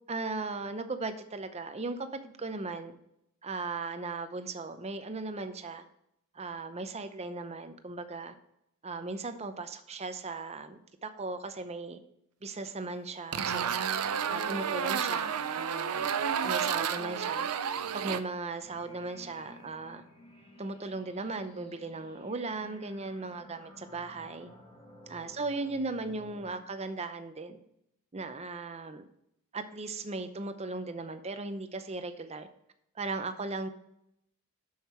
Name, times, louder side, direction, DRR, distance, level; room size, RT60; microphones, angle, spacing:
voice 1, 0.1-2.9 3.4-5.8 6.3-8.3 8.8-12.0 12.4-13.8 14.3-16.1 16.4-17.5 17.9-20.0 20.6-24.5 25.1-27.6 28.1-29.0 29.5-32.5 32.9-33.7, right 3 dB, 30° right, 9 dB, 0.6 m, -37 dB
sound 1, 13.3-18.2, right 7 dB, 85° right, 0.6 m, -31 dB
sound 2, 18.6-26.5, left 1 dB, 25° left, 1.9 m, -54 dB
6.9 x 6.5 x 4.3 m, 0.76 s
head